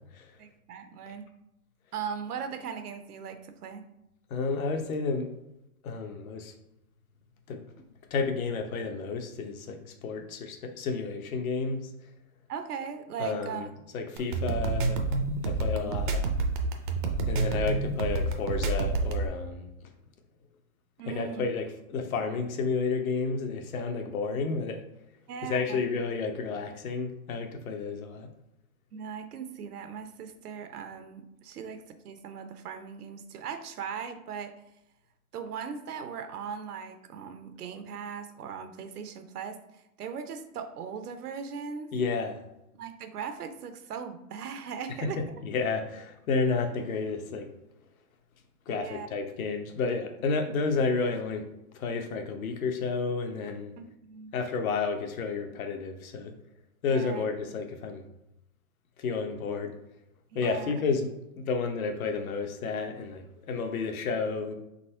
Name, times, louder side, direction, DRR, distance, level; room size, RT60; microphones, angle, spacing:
voice 1, 0.4-1.3 1.9-3.8 12.5-13.7 15.7-15.9 21.0-21.5 25.3-25.8 28.9-34.6 35.3-39.6 40.0-41.9 42.7-45.2 48.7-49.1 53.8-54.3 56.9-57.3 60.3-60.7, right 6 dB, 85° right, 8 dB, 0.8 m, -39 dB
voice 2, 4.3-5.3 5.8-6.5 7.5-7.6 8.1-11.8 13.2-13.7 13.9-15.0 15.4-16.2 17.3-19.7 21.1-24.8 25.4-28.3 41.9-42.4 45.0-47.5 48.7-51.4 51.7-53.7 54.3-56.3 56.8-58.1 59.0-59.7 60.3-64.5, left 4 dB, 70° left, 5 dB, 0.9 m, -31 dB
sound 1, 14.2-19.3, right 3 dB, 35° right, 0.4 m, -28 dB
4.0 x 2.7 x 4.3 m, 0.87 s
hypercardioid pair, 150°, 44 cm